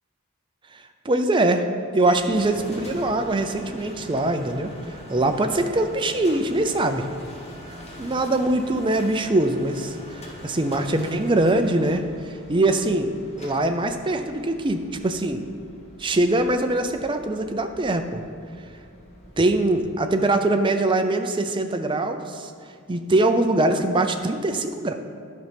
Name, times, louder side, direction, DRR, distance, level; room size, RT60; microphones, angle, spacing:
voice 1, 1.0-1.7 1.9-7.1 8.0-13.1 13.4-15.4 16.0-18.2 19.4-22.5 22.9-24.9, right 2 dB, 20° right, 6 dB, 0.5 m, -23 dB
sound 1, 2.0-19.9, equal, 30° left, 1.4 m, -43 dB
11.0 x 5.6 x 5.2 m, 2.4 s
head